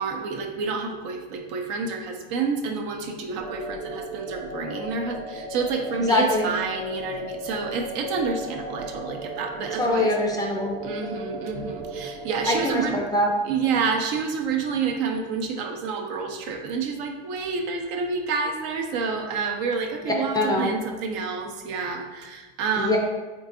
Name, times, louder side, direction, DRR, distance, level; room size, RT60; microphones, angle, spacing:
voice 1, 0.0-10.1 10.8-13.0 13.4-23.0, right 5 dB, 55° right, 3 dB, 0.6 m, -28 dB
sound 1, 3.4-12.8, right 2 dB, 85° right, 1.1 m, -36 dB
voice 2, 6.1-6.5 9.8-10.8 12.5-13.3 20.0-20.7 22.8-23.0, left 1 dB, 10° left, 0 dB, 0.5 m, -23 dB
3.8 x 3.6 x 2.5 m, 1.3 s
hypercardioid pair, 105°, 31 cm